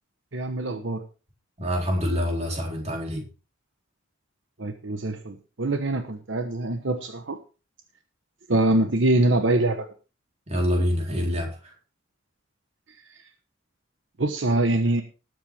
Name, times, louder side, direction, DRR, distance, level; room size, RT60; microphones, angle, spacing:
voice 1, 0.3-1.0 4.6-7.4 8.5-9.9 14.2-15.0, right 2 dB, 70° right, 7 dB, 1.1 m, -24 dB
voice 2, 1.6-3.3 10.5-11.7, equal, 35° right, 1 dB, 3.9 m, -26 dB
19.5 x 8.1 x 3.5 m, 0.33 s
head